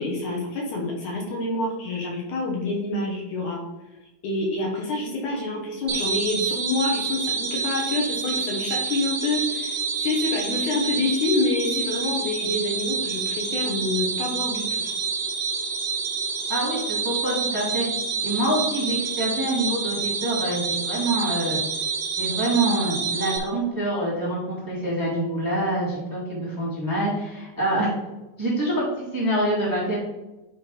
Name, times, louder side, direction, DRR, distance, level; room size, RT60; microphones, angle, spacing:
voice 1, 0.0-3.6 4.2-14.9, left 2 dB, 65° left, -1 dB, 2.3 m, -27 dB
sound 1, 5.9-23.4, right 5 dB, 60° right, 2.8 m, -28 dB
voice 2, 16.5-17.9 18.2-21.6 22.1-28.0 28.4-30.0, right 1 dB, 10° right, -6 dB, 1.5 m, -26 dB
9.9 x 3.4 x 4.8 m, 1.0 s
omnidirectional pair, 4.2 m